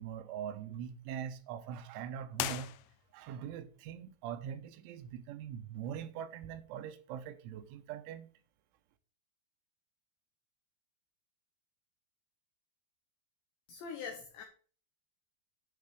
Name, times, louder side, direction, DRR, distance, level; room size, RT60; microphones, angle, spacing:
voice 1, 0.0-2.7 3.1-8.3, right 9 dB, 75° right, 3.2 m, -42 dB
sound 1, 2.3-3.4, left 15 dB, 90° left, 3.4 m, -39 dB
voice 2, 13.7-14.4, left 6 dB, 70° left, 3.0 m, -43 dB
12.0 x 5.1 x 5.0 m
omnidirectional pair, 5.9 m